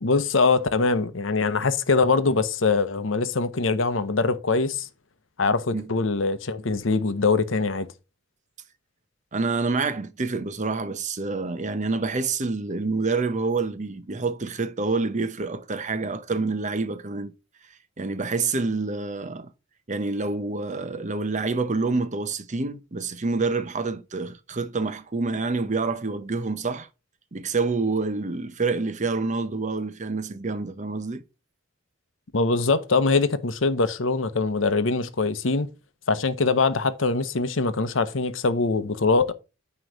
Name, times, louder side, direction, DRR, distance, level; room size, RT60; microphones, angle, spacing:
voice 1, 0.0-4.9 5.4-7.9 32.3-35.7 36.1-39.3, left 4 dB, 70° left, 0.8 m, -23 dB
voice 2, 9.3-17.3 18.0-19.5 19.9-26.9 27.3-31.2, right 3 dB, 40° right, 0.7 m, -27 dB
9.4 x 3.1 x 6.5 m
head